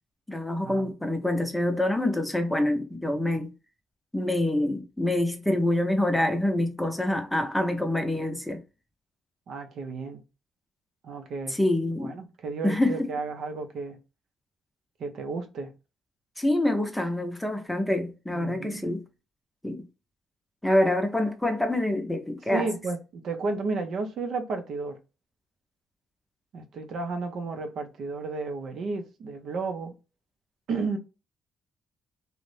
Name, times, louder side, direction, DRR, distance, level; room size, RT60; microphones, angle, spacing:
voice 1, 0.3-3.5 4.1-8.6 11.5-12.1 12.6-13.1 16.4-19.0 19.6-19.9 20.6-22.7, left 1 dB, 5° left, 0.6 m, -26 dB
voice 2, 9.5-10.2 11.0-11.6 12.0-14.0 15.0-15.7 18.3-18.9 22.5-25.0 26.5-30.0 30.7-31.0, right 4 dB, 65° right, 0.5 m, -33 dB
2.5 x 2.1 x 3.1 m
cardioid pair, 90°, 0 cm